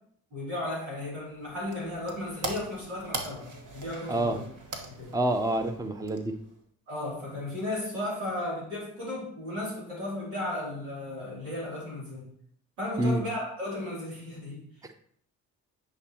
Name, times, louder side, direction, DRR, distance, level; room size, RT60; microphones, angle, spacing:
voice 1, 0.3-4.4 4.9-5.1 6.9-12.3 12.8-14.6, left 1 dB, 85° right, -5 dB, 3.0 m, -35 dB
sound 1, 1.2-6.6, right 2 dB, 45° right, 1.6 m, -41 dB
voice 2, 4.1-4.4 5.1-6.3 13.0-13.2, right 1 dB, 10° right, 8 dB, 0.7 m, -27 dB
9.8 x 5.1 x 3.0 m, 0.64 s
hypercardioid pair, 45°, 43 cm